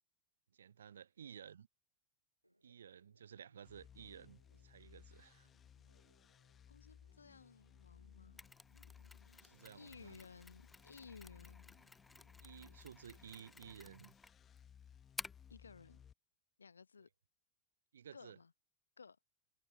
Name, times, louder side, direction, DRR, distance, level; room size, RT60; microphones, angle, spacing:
voice 1, 0.5-1.7 2.6-5.5 9.4-10.2 12.4-14.1 17.9-18.4, right 8 dB, 65° right, 0.8 m, -55 dB
Laughter, 2.4-13.3, right 1 dB, 90° right, 5.6 m, -75 dB
sound 1, 3.6-16.1, left 8 dB, 25° left, 1.3 m, -62 dB
voice 2, 6.7-8.4 9.3-9.4 9.7-11.9 15.5-16.0 16.6-17.1 18.1-18.5 19.0-19.2, left 5 dB, 75° left, 1.0 m, -58 dB
Mechanisms, 8.4-15.6, left 3 dB, 10° left, 0.4 m, -54 dB
figure-of-eight pair, 90°, 0 cm